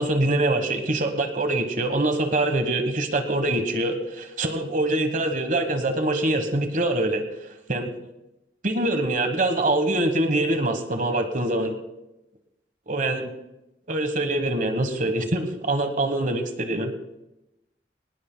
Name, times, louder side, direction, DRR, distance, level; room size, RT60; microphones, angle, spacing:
voice 1, 0.0-7.2 7.7-7.9 8.6-11.7 12.9-13.3 13.9-16.9, right 2 dB, 45° right, 7 dB, 1.3 m, -24 dB
20.5 x 19.5 x 2.3 m, 0.93 s
head